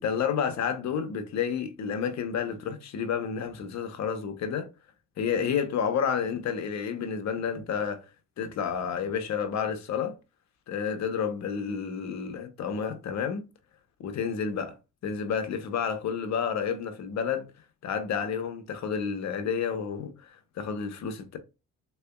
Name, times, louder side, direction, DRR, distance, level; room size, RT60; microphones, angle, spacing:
voice 1, 0.0-4.7 5.2-8.0 8.4-10.1 10.7-13.4 14.0-14.7 15.0-17.5 17.8-21.4, left 7 dB, 65° left, 0.8 m, -30 dB
3.7 x 3.3 x 2.2 m
cardioid pair, 90°, 30 cm